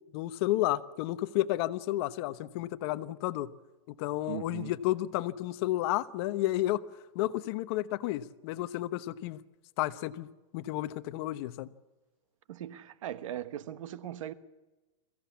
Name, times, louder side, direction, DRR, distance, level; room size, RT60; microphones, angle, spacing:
voice 1, 0.1-3.5 3.9-6.8 7.1-9.4 9.8-11.7, left 15 dB, 45° left, 1.0 m, -32 dB
voice 2, 4.3-4.7 12.5-14.3, right 11 dB, 70° right, 1.3 m, -39 dB
22.5 x 15.5 x 8.5 m
supercardioid pair, 145°, 17 cm